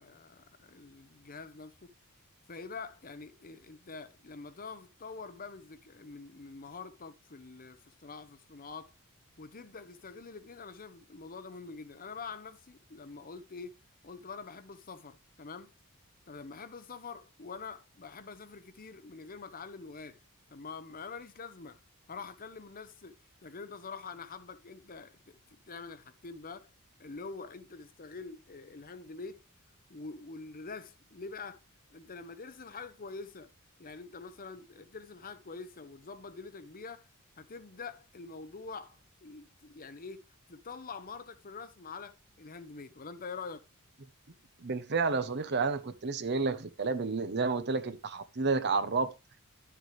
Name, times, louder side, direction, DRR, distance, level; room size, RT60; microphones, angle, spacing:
voice 1, 0.0-1.9 2.5-8.9 9.4-13.8 14.0-15.7 16.3-20.2 20.5-21.8 22.1-26.7 27.0-29.4 29.9-31.6 31.9-33.5 33.8-37.1 37.4-40.2 40.5-43.6, left 4 dB, 40° left, 0.8 m, -45 dB
voice 2, 44.6-49.1, right 4 dB, 50° right, 0.9 m, -30 dB
11.5 x 6.8 x 3.3 m
head